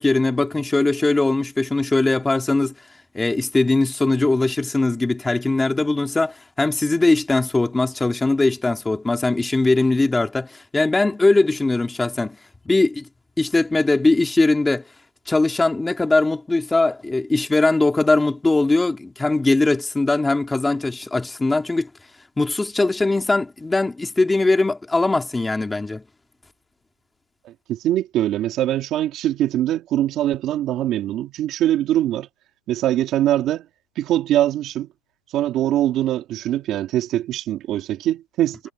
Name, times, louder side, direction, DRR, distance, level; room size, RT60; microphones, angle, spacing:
voice 1, 0.0-2.7 3.1-12.4 12.6-13.1 13.4-14.9 15.3-21.9 22.4-26.0, left 2 dB, 5° left, 2.6 m, -20 dB
voice 2, 27.4-32.3 32.7-33.6 34.0-34.9 35.3-38.6, right 13 dB, 30° right, 2.5 m, -22 dB
supercardioid pair, 155°, 0 cm